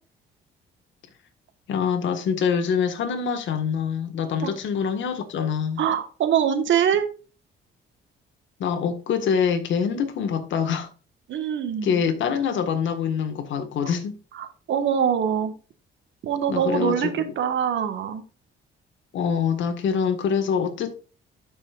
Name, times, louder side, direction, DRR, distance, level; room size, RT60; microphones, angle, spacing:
voice 1, 1.7-5.8 8.6-10.9 11.8-14.2 16.5-17.3 19.1-20.9, left 7 dB, 70° left, 1.7 m, -25 dB
voice 2, 5.8-7.1 11.3-12.0 14.3-15.5 16.2-18.2, right 8 dB, 75° right, 1.6 m, -24 dB
13.0 x 5.5 x 2.5 m
cardioid pair, 90°, 20 cm